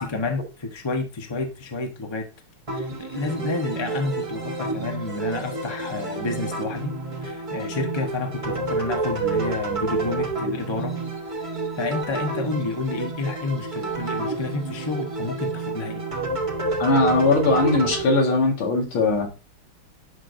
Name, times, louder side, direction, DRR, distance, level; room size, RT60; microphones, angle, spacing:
voice 1, 0.0-2.2 2.7-6.9 7.2-10.9 11.4-16.0, left 3 dB, 20° left, 3 dB, 0.7 m, -30 dB
sound 1, 2.7-18.0, right 3 dB, 25° right, 0.7 m, -29 dB
voice 2, 16.8-19.3, left 3 dB, 70° left, 1 dB, 2.7 m, -20 dB
11.0 x 4.8 x 2.6 m, 0.31 s
omnidirectional pair, 2.4 m